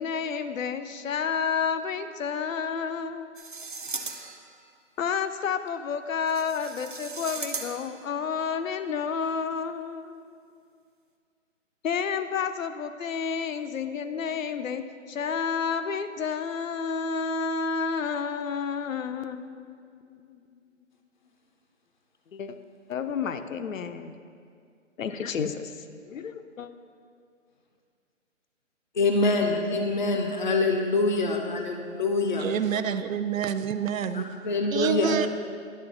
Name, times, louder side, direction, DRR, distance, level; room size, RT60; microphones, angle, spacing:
voice 1, 0.0-3.3 5.0-10.2 11.8-20.6 22.3-22.6 22.9-24.2 25.0-26.7, left 6 dB, 80° left, 10 dB, 0.6 m, -30 dB
sound 1, 3.3-4.6 6.3-8.0, right 4 dB, 40° right, 0.4 m, -37 dB
voice 2, 29.0-32.4 34.1-35.1, left 3 dB, 40° left, 3 dB, 0.4 m, -25 dB
voice 3, 32.4-34.3 34.7-35.3, right 8 dB, 90° right, 12 dB, 0.5 m, -28 dB
11.0 x 3.8 x 3.9 m, 2.3 s
hypercardioid pair, 170°, 39 cm